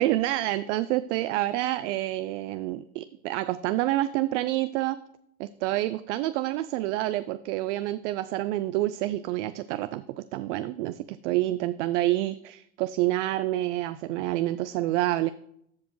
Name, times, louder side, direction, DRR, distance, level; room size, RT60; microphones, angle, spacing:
voice 1, 0.0-5.0 5.4-15.3, right 15 dB, 55° right, 13 dB, 0.5 m, -28 dB
14.0 x 5.0 x 3.1 m, 0.72 s
hypercardioid pair, 100°, 43 cm